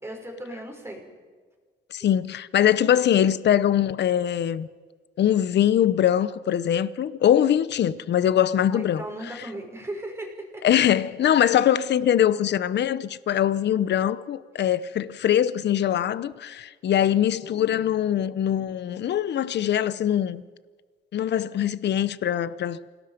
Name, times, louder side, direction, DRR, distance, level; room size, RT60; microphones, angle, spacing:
voice 1, 0.0-1.1 8.7-10.6 13.5-13.6, right 1 dB, 15° right, 6.3 m, -37 dB
voice 2, 1.9-4.7 5.2-9.5 10.6-20.4 21.1-22.8, left 10 dB, 60° left, 0.8 m, -22 dB
28.0 x 19.0 x 5.2 m
cardioid pair, 90°, 20 cm